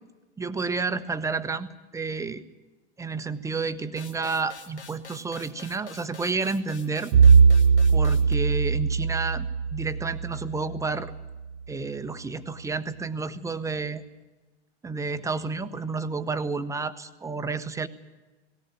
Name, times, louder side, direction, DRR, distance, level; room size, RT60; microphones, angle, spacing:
voice 1, 0.4-1.7 1.9-2.4 3.0-7.1 7.9-11.1 11.7-14.0 14.8-17.9, right 4 dB, 10° right, 12 dB, 0.9 m, -30 dB
sound 1, 4.0-8.3, left 5 dB, 80° left, 2.1 m, -46 dB
Bowed string instrument, 7.1-11.3, right 5 dB, 45° right, 1.3 m, -20 dB
18.0 x 18.0 x 8.9 m, 1.2 s
figure-of-eight pair, 90°, 33 cm